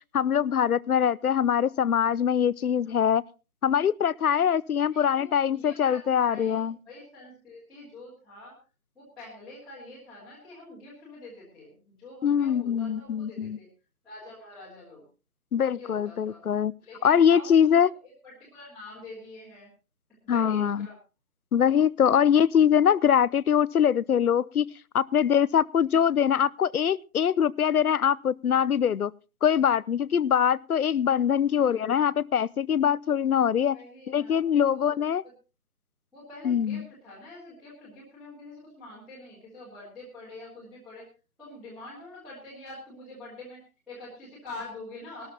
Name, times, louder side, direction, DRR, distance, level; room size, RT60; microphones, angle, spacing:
voice 1, 0.1-3.2 3.6-6.8 12.2-13.6 15.5-16.7 17.0-17.9 20.3-20.9 21.5-24.7 24.9-29.1 29.4-33.8 34.1-35.2 36.4-36.9, left 8 dB, 75° left, 22 dB, 0.7 m, -23 dB
voice 2, 4.9-8.6 8.9-13.7 14.0-15.0 15.7-16.4 16.8-17.7 18.0-19.7 20.2-21.0 31.5-32.2 33.7-35.0 36.1-41.1 41.4-45.3, left 2 dB, ahead, -14 dB, 1.5 m, -45 dB
19.5 x 13.0 x 2.8 m, 0.31 s
hypercardioid pair, 165°, 44 cm